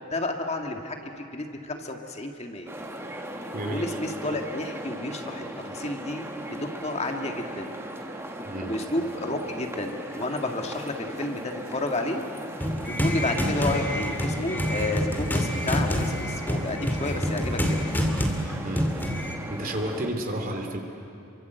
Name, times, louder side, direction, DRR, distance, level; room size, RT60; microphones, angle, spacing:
voice 1, 0.0-2.7 3.7-7.7 8.6-12.2 13.0-17.8, left 2 dB, 30° left, 3 dB, 1.9 m, -31 dB
sound 1, 2.7-20.1, right 1 dB, 10° right, 1.8 m, -38 dB
voice 2, 3.5-4.0 8.4-8.8 17.1-17.2 18.6-18.9 19.5-20.8, right 1 dB, 45° right, 3 dB, 3.1 m, -31 dB
sound 2, 12.6-19.3, equal, 10° left, 2.6 m, -27 dB
29.5 x 24.0 x 8.1 m, 2.8 s
head